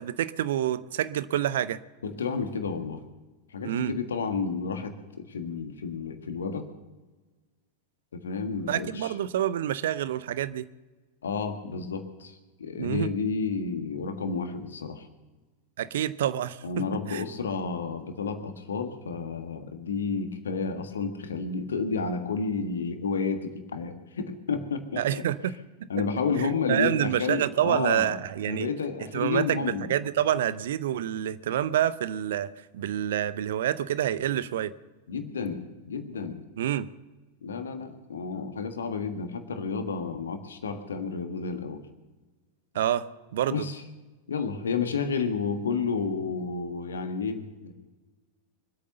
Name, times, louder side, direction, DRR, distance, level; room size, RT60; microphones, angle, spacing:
voice 1, 0.0-1.8 3.6-3.9 8.7-10.7 12.8-13.1 15.8-17.2 25.0-25.6 26.4-28.7 29.1-34.7 36.6-36.9 42.7-43.1 43.3-43.7, right 11 dB, 60° right, 16 dB, 0.6 m, -27 dB
voice 2, 2.0-3.0 3.5-6.7 8.1-9.1 11.2-12.3 12.6-15.1 16.6-25.2 25.9-28.1 28.5-29.9 35.1-36.4 37.4-41.8 43.5-43.8 44.3-47.7, left 5 dB, 70° left, 7 dB, 1.6 m, -31 dB
24.0 x 8.5 x 6.7 m, 1.2 s
figure-of-eight pair, 90°, 0 cm